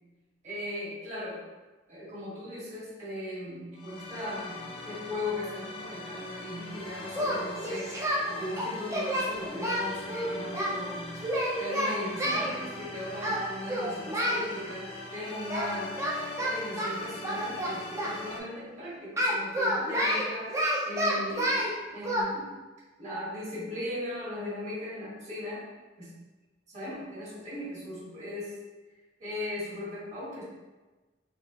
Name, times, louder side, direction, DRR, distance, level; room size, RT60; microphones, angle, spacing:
voice 1, 0.4-1.4 1.9-8.0 8.2-11.1 11.6-16.0 16.4-20.6 20.8-22.5 23.0-25.6 26.0-26.1 26.7-28.5 29.2-30.4, left 1 dB, 40° right, -8 dB, 1.5 m, -38 dB
sound 1, 3.7-18.4, left 2 dB, 35° left, 0.5 m, -42 dB
Singing, 7.1-8.2 8.6-10.7 11.2-12.5 13.2-13.4 13.7-14.4 15.5-15.7 16.0-18.2 19.2-21.7 22.0-22.2, equal, 15° right, 0.6 m, -29 dB
3.8 x 2.9 x 2.9 m, 1.2 s
head